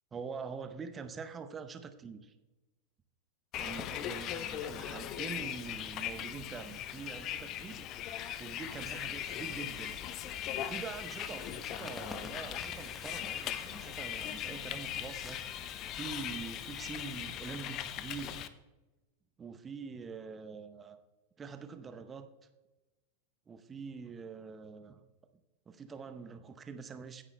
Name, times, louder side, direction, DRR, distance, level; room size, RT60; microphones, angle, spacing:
voice 1, 0.1-2.3 3.6-7.9 8.4-10.0 10.6-15.4 15.9-18.4 19.4-21.0 21.4-22.3 23.5-25.0 25.7-27.2, right 5 dB, 20° right, 9 dB, 0.8 m, -44 dB
Bus, 3.5-18.5, left 11 dB, 35° left, 0.6 m, -39 dB
sound 1, 8.9-17.2, left 2 dB, 10° left, 0.9 m, -52 dB
16.0 x 10.0 x 2.2 m, 1.1 s
figure-of-eight pair, 90°, 0 cm